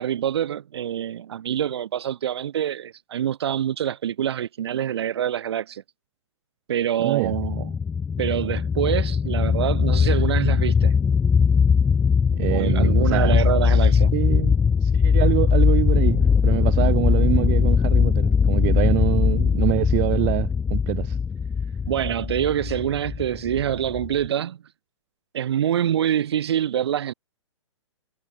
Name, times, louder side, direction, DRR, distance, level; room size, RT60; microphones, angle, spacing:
voice 1, 0.0-5.8 6.7-7.7 8.2-10.9 12.5-14.1 21.9-24.6 25.3-27.1, right 10 dB, 55° right, 6.0 m, -25 dB
voice 2, 7.0-7.3 12.3-13.4 13.7-13.8 14.1-21.2, right 36 dB, 35° right, 4.6 m, -25 dB
sound 1, 7.2-24.3, left 6 dB, 10° left, 0.8 m, -20 dB
figure-of-eight pair, 120°, 16 cm